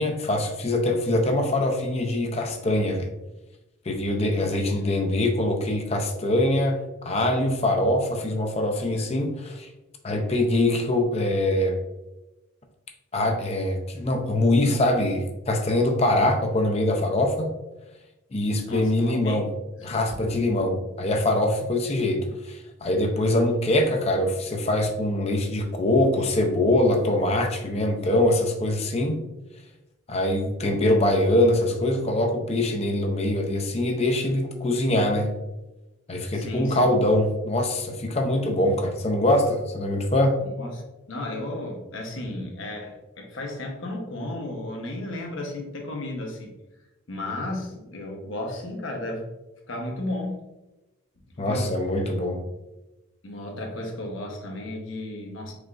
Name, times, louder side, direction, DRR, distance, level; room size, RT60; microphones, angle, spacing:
voice 1, 0.0-3.1 3.9-9.7 10.0-11.8 13.1-17.5 18.3-19.5 19.8-29.2 30.1-35.3 36.1-40.5 51.4-52.4, left 1 dB, 30° left, 3 dB, 0.5 m, -23 dB
voice 2, 18.6-19.5 19.8-20.2 36.3-36.9 40.4-40.8 41.1-46.5 47.1-49.3 49.7-50.4 51.4-51.7 53.2-55.5, left 1 dB, 75° left, 1 dB, 1.0 m, -34 dB
4.9 x 3.6 x 2.4 m, 1.0 s
head